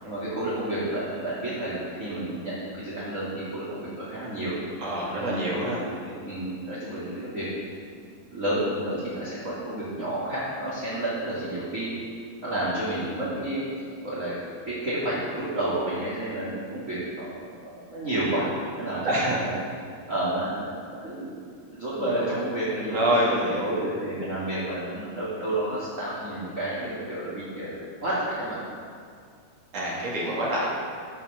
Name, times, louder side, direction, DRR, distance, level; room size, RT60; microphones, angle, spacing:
voice 1, 0.0-4.5 5.1-6.0 6.2-7.4 8.3-11.9 12.4-13.6 14.0-14.3 14.6-17.3 17.6-19.5 20.1-21.3 21.7-28.6, right 1 dB, 20° right, -10 dB, 2.7 m, -30 dB
voice 2, 4.8-5.8 19.0-19.5 22.9-23.7 29.7-30.7, equal, 45° right, -5 dB, 2.7 m, -26 dB
13.5 x 6.4 x 6.8 m, 2.2 s
omnidirectional pair, 5.0 m